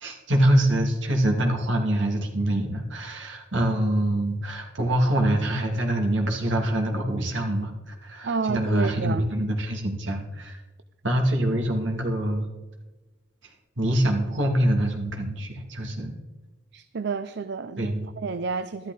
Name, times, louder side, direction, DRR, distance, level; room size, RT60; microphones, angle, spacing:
voice 1, 0.0-10.6 11.0-12.5 13.8-16.1 17.8-18.1, right 1 dB, 80° right, 2 dB, 2.7 m, -25 dB
voice 2, 8.2-9.3 16.7-18.9, right 4 dB, 65° right, 11 dB, 0.5 m, -30 dB
13.0 x 12.0 x 4.1 m, 1.1 s
head